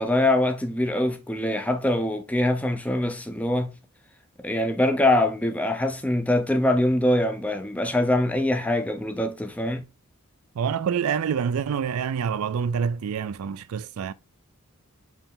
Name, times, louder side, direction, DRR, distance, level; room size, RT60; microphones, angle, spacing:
voice 1, 0.0-3.7 4.4-9.9, left 1 dB, 5° left, 0.5 m, -23 dB
voice 2, 10.6-14.1, right 7 dB, 75° right, 0.4 m, -26 dB
4.5 x 3.3 x 3.6 m
head